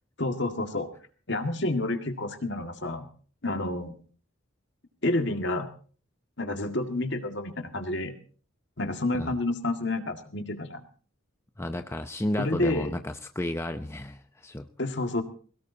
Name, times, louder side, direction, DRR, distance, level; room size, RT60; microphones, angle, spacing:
voice 1, 0.2-0.9 1.3-3.1 3.4-3.9 5.0-5.7 6.4-8.1 8.8-10.8 12.4-12.9 14.8-15.2, left 2 dB, 55° left, 6 dB, 2.0 m, -29 dB
voice 2, 11.6-14.7, left 1 dB, 10° left, 7 dB, 0.7 m, -32 dB
21.5 x 18.0 x 2.8 m, 0.42 s
head